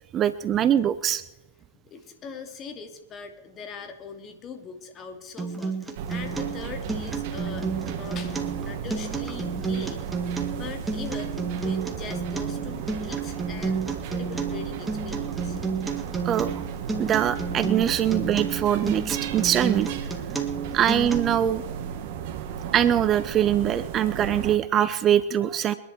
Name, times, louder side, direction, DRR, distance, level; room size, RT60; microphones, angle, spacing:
voice 1, 0.1-1.2 16.2-16.5 17.0-19.9 20.7-21.6 22.7-25.7, right 10 dB, 30° right, 14 dB, 0.7 m, -23 dB
voice 2, 1.8-10.0 10.6-15.6, left 5 dB, 30° left, 6 dB, 2.7 m, -41 dB
Acoustic guitar, 5.4-21.4, right 4 dB, 10° right, 2.4 m, -31 dB
sound 1, 5.9-24.6, right 8 dB, 55° right, 2.1 m, -35 dB
28.0 x 11.0 x 4.7 m, 1.0 s
hypercardioid pair, 110°, 0 cm